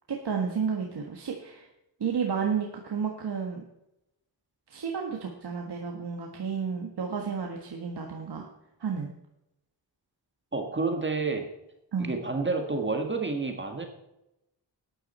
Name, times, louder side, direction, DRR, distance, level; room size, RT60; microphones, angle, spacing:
voice 1, 0.1-1.7 2.0-3.6 4.7-8.5 8.8-9.1 11.9-12.1, right 6 dB, 60° right, 1 dB, 1.6 m, -31 dB
voice 2, 10.5-11.5 12.0-13.9, right 3 dB, 25° right, 4 dB, 1.6 m, -29 dB
13.0 x 10.0 x 4.3 m, 0.87 s
wide cardioid pair, 95°, 45 cm